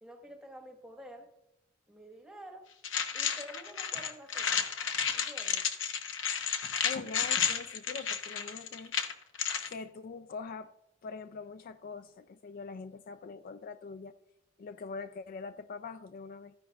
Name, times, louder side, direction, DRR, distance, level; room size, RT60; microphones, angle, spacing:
voice 1, 0.0-1.3 1.9-2.7 3.1-4.6 5.1-5.6, equal, 5° right, 1.3 m, -49 dB
sound 1, 2.8-9.7, left 7 dB, 65° left, 0.9 m, -32 dB
voice 2, 6.8-8.9 9.7-10.7 11.0-14.1 14.6-16.5, left 4 dB, 45° left, 0.3 m, -43 dB
13.5 x 10.5 x 2.3 m
head